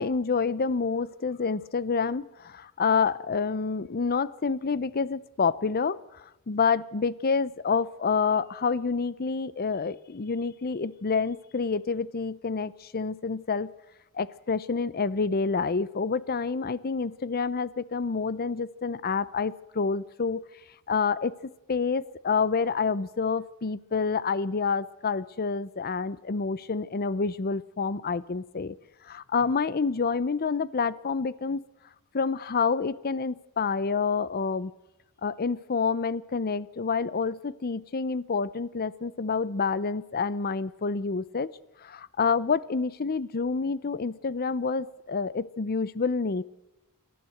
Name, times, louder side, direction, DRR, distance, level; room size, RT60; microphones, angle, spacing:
voice 1, 0.0-13.7 14.1-20.4 20.9-21.3 21.7-28.8 29.0-31.6 32.1-34.7 35.2-41.5 41.8-46.4, left 5 dB, 45° left, 19 dB, 0.6 m, -28 dB
30.0 x 12.0 x 7.9 m, 0.95 s
head